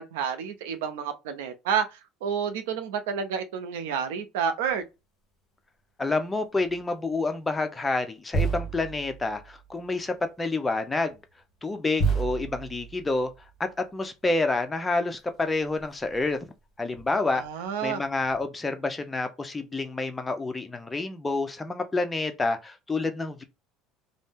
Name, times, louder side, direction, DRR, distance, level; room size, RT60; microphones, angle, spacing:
voice 1, 0.0-4.8 17.3-18.0, right 7 dB, 85° right, 0.5 m, -30 dB
sound 1, 4.6-4.8 6.6-6.8 8.3-9.9 11.1-11.2 12.0-13.7 15.3-15.4 15.6-16.2 16.9-17.5 18.2-18.4, right 4 dB, 40° left, 1.1 m, -31 dB
voice 2, 6.0-11.2 11.6-13.3 13.6-16.4 16.8-17.4 17.8-23.4, left 3 dB, 15° left, 0.6 m, -28 dB
2.6 x 2.0 x 3.5 m
supercardioid pair, 95°, 0 cm